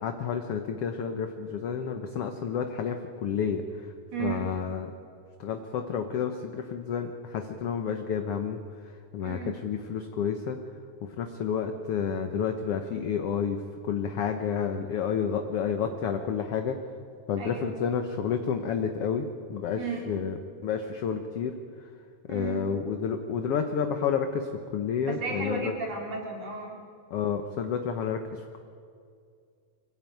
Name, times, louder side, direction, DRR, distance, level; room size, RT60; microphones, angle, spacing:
voice 1, 0.0-3.9 4.2-4.9 5.4-10.6 11.0-16.8 17.3-20.4 20.6-21.9 22.3-25.7 27.1-28.6, left 7 dB, 65° left, 6 dB, 1.5 m, -30 dB
voice 2, 4.1-4.5 9.2-9.6 17.4-17.7 19.8-20.1 22.3-22.7 25.0-26.8, right 4 dB, 50° right, 0 dB, 4.1 m, -34 dB
25.0 x 17.0 x 9.2 m, 2.3 s
omnidirectional pair, 4.0 m